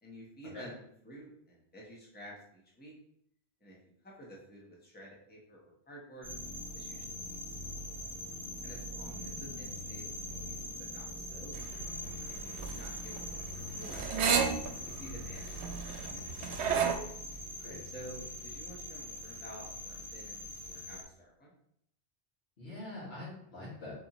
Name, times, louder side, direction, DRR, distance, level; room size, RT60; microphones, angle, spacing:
voice 1, 0.0-2.9 3.6-3.8 4.0-6.3 6.7-8.1 8.6-11.5 12.3-15.9 17.8-21.5, right 1 dB, 10° left, -4 dB, 1.0 m, -51 dB
sound 1, 6.2-21.0, left 1 dB, 20° right, 0.9 m, -42 dB
voice 2, 9.0-9.4 17.6-17.8 22.6-23.9, left 2 dB, 70° left, -10 dB, 1.9 m, -44 dB
sound 2, 11.5-17.0, right 6 dB, 85° right, 0.9 m, -33 dB
4.2 x 4.1 x 2.9 m, 0.72 s
omnidirectional pair, 1.1 m